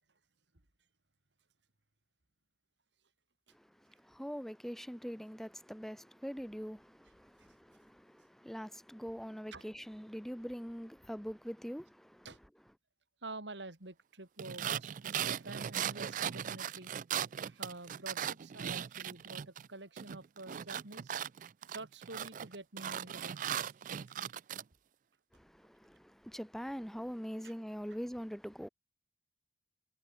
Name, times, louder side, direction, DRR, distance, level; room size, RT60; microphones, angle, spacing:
voice 1, 3.5-12.3 25.3-28.7, equal, ahead, 3.4 m, -43 dB
voice 2, 13.2-16.9 17.4-21.1 21.7-23.9 27.4-27.5, right 2 dB, 90° right, 3.6 m, -48 dB
sound 1, 14.4-19.7 20.0-24.6, right 9 dB, 50° right, 0.4 m, -38 dB
head